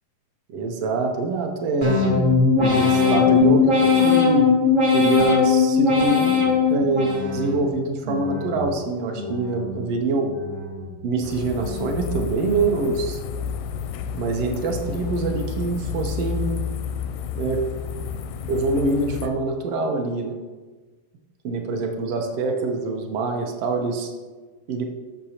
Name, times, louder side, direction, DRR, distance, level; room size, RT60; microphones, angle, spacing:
voice 1, 0.5-2.0 2.6-4.5 4.9-6.4 6.7-10.3 11.0-13.2 14.2-16.6 17.3-17.6 18.5-20.4 21.4-24.1 24.7-24.8, right 3 dB, 65° right, 3 dB, 1.5 m, -25 dB
sound 1, 1.8-7.6 8.1-8.7 9.1-9.8 10.2-10.9 11.3-11.9 12.4-13.0, left 5 dB, 85° right, 0.4 m, -20 dB
sound 2, 11.2-19.3, left 7 dB, 85° left, 2.1 m, -31 dB
13.0 x 6.8 x 2.9 m, 1.3 s
omnidirectional pair, 3.8 m